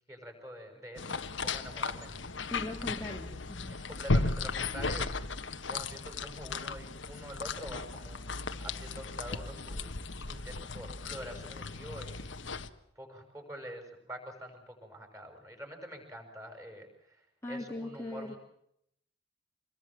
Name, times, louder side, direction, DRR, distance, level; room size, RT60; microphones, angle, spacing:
voice 1, 0.1-2.4 3.7-8.2 8.6-9.9 10.2-12.4 12.9-18.4, equal, 15° right, 4 dB, 6.6 m, -46 dB
sound 1, 1.0-12.7, left 3 dB, 70° left, 1.4 m, -36 dB
voice 2, 2.5-3.8 17.4-18.3, left 1 dB, 15° left, -1 dB, 2.2 m, -39 dB
26.5 x 22.0 x 7.6 m, 0.74 s
head